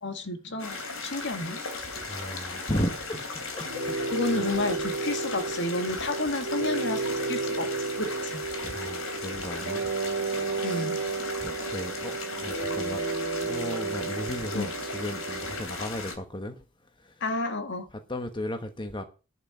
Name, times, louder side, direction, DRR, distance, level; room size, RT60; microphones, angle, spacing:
voice 1, 0.0-1.6 4.1-7.0 7.3-7.7 8.0-8.4 10.6-11.0 14.5-14.7 17.2-17.9, left 2 dB, 55° left, 1.9 m, -31 dB
sound 1, 0.6-16.1, left 3 dB, 70° left, 3.2 m, -37 dB
voice 2, 2.0-4.5 8.6-9.9 10.4-10.9 11.4-13.0 13.4-16.6 17.0-17.1 17.9-19.0, left 1 dB, 20° left, 1.1 m, -35 dB
sound 2, 3.6-15.6, right 4 dB, 70° right, 2.1 m, -32 dB
11.0 x 5.7 x 8.0 m
head